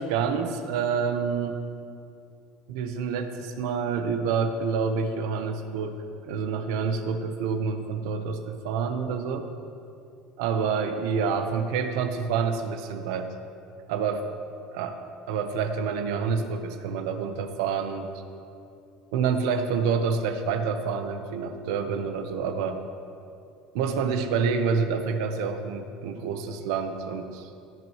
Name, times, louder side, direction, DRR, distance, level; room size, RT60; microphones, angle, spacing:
voice 1, 0.0-1.6 2.7-9.5 10.4-13.3 13.9-14.3 14.7-14.9 15.3-18.1 19.1-22.8 23.7-27.5, right 5 dB, 85° right, 7 dB, 0.9 m, -28 dB
17.0 x 9.3 x 3.1 m, 2.6 s
cardioid pair, 125°, 3 cm